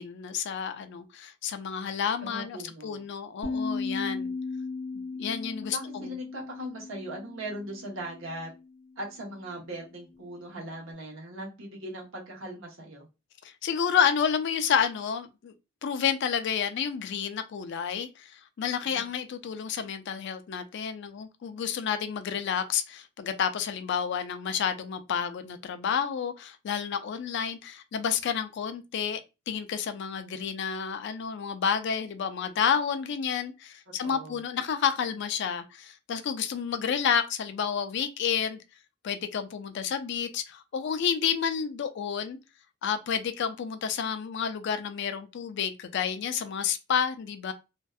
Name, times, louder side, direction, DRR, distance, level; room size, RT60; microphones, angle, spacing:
voice 1, 0.0-2.6 2.8-4.3 4.9-5.8 6.0-6.1 13.6-15.5 15.8-29.2 29.5-38.6 39.0-42.4 42.8-47.5, left 7 dB, 60° left, 0.3 m, -30 dB
voice 2, 2.2-3.1 5.7-8.5 9.0-13.1 18.9-19.0 34.0-34.4, right 1 dB, 65° right, 0.9 m, -39 dB
sound 1, 3.4-8.6, left 4 dB, 20° right, 0.9 m, -36 dB
2.6 x 2.2 x 2.3 m
head